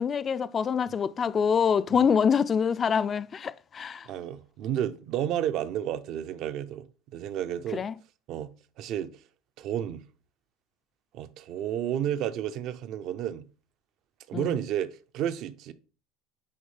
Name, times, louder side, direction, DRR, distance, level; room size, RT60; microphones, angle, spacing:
voice 1, 0.0-4.1 7.7-7.9 14.3-14.6, left 6 dB, 30° left, 0.3 m, -25 dB
voice 2, 4.1-6.9 7.1-7.8 8.3-8.5 8.8-9.2 9.6-10.0 11.1-13.4 14.3-15.7, right 10 dB, 55° right, 0.5 m, -31 dB
9.5 x 3.2 x 3.3 m
supercardioid pair, 120°, 0 cm